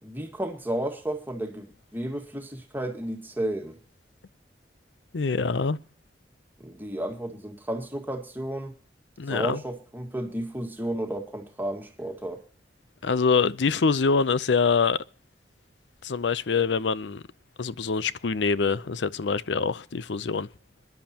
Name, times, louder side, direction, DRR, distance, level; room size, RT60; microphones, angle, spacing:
voice 1, 0.0-3.8 6.6-8.7 9.3-12.4, right 1 dB, 10° right, 1.8 m, -32 dB
voice 2, 5.1-5.8 9.2-9.6 13.0-15.0 16.0-17.2 17.6-20.5, left 5 dB, 90° left, 0.6 m, -25 dB
25.5 x 11.0 x 2.9 m
head